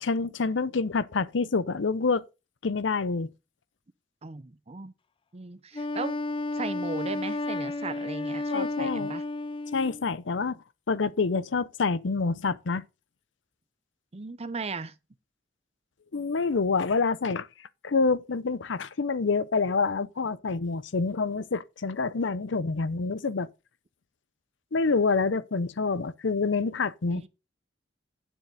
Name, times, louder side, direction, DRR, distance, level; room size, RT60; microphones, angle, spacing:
voice 1, 0.0-2.2 2.6-3.3 8.5-9.1 9.7-10.6 10.9-12.8 16.1-17.5 17.8-23.5 24.7-27.2, left 4 dB, 75° left, 0.7 m, -27 dB
voice 2, 4.2-4.9 5.3-6.2 6.5-9.2 14.1-14.9 27.1-27.3, right 3 dB, 35° right, 0.7 m, -37 dB
Wind instrument woodwind instrument, 5.7-10.1, left 2 dB, 30° left, 0.4 m, -32 dB
9.3 x 7.5 x 3.8 m
head